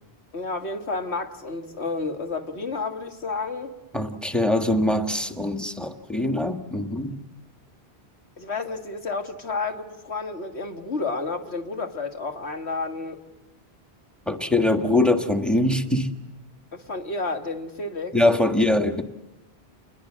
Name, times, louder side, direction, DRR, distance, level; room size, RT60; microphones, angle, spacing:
voice 1, 0.3-3.7 8.4-13.2 16.7-18.2, left 3 dB, 85° left, 2.2 m, -31 dB
voice 2, 3.9-7.2 14.3-16.1 18.1-19.0, left 1 dB, ahead, 1.5 m, -23 dB
29.0 x 21.0 x 7.4 m
omnidirectional pair, 1.1 m